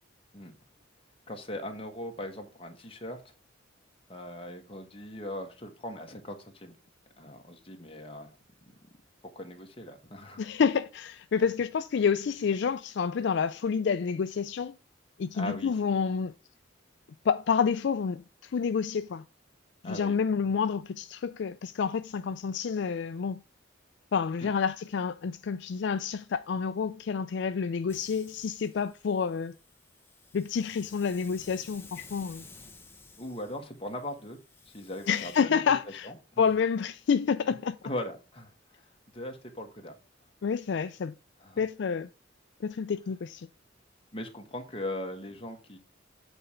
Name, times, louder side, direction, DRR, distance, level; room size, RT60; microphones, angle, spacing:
voice 1, 1.3-3.2 4.1-6.7 7.2-8.3 8.6-8.7 9.2-10.4 15.3-15.7 19.8-20.2 24.4-24.5 33.2-34.4 34.7-35.6 36.0-36.4 37.8-38.9 39.1-39.9 41.4-41.6 44.1-45.8, left 1 dB, 30° left, 1.4 m, -39 dB
voice 2, 10.4-14.8 15.2-16.3 17.2-19.2 19.8-23.4 24.1-29.5 30.3-32.4 35.1-36.1 36.4-37.7 40.4-41.1 41.6-42.1 42.6-43.5, left 6 dB, 60° left, 0.4 m, -29 dB
Hiss, 27.9-35.4, left 3 dB, 10° left, 0.8 m, -53 dB
8.0 x 4.3 x 5.0 m
head